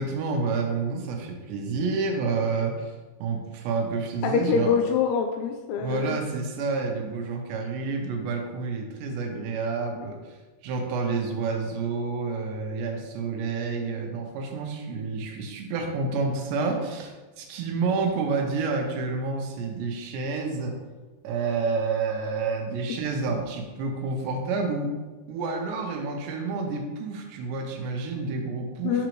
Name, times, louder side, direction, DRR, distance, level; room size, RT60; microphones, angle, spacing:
voice 1, 0.0-2.9 3.2-4.8 5.8-10.4 10.6-20.8 21.2-24.9 25.3-29.0, right 4 dB, 85° right, 2 dB, 3.0 m, -29 dB
voice 2, 4.2-6.2 28.8-29.1, left 6 dB, 85° left, 3 dB, 2.3 m, -24 dB
6.6 x 5.1 x 3.0 m, 1.3 s
omnidirectional pair, 4.9 m